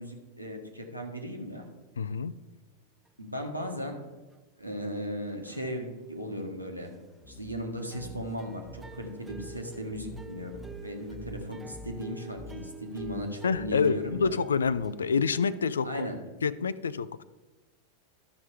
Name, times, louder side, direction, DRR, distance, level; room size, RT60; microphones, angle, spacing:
voice 1, 0.0-1.7 3.2-4.0 4.6-6.9 7.3-14.3 15.8-16.2, equal, 90° right, 2 dB, 1.5 m, -37 dB
voice 2, 2.0-2.3 13.4-16.1 16.4-17.2, left 5 dB, 70° left, 17 dB, 0.4 m, -27 dB
sound 1, 3.1-3.2 3.3-3.6 4.3-4.4 4.8-4.9 5.3-5.9 7.8-15.7, right 3 dB, 10° right, 0.6 m, -48 dB
sound 2, 7.2-15.1, right 1 dB, 10° left, 1.1 m, -47 dB
12.5 x 5.9 x 4.8 m, 1.2 s
figure-of-eight pair, 90°, 0 cm